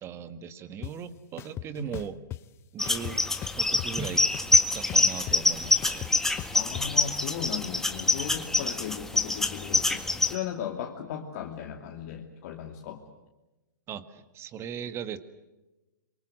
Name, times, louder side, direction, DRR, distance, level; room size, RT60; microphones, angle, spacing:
voice 1, 0.0-2.2 2.7-3.2 3.5-4.2 4.7-6.1 13.9-15.2, right 8 dB, 25° right, 12 dB, 1.8 m, -38 dB
sound 1, 0.8-0.9 1.4-2.4 2.9-4.0 4.3-6.9, left 13 dB, 25° left, 0.8 m, -38 dB
sound 2, 2.8-10.3, left 2 dB, 5° left, 1.8 m, -25 dB
voice 2, 6.5-13.0, left 9 dB, 50° left, 2 dB, 2.6 m, -37 dB
27.0 x 24.5 x 7.8 m, 1.0 s
hypercardioid pair, 125°, 10 cm